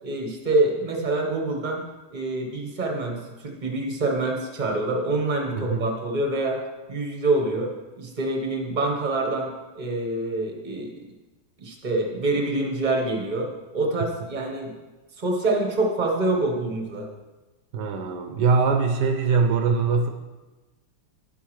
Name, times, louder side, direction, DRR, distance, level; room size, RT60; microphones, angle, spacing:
voice 1, 0.0-6.6 6.9-7.7 8.0-10.9 11.6-14.7 15.2-17.1, right 2 dB, 35° right, 2 dB, 0.8 m, -26 dB
voice 2, 5.6-5.9 17.7-20.1, right 5 dB, 65° right, 4 dB, 1.1 m, -22 dB
10.5 x 8.2 x 3.1 m, 1.2 s
omnidirectional pair, 2.4 m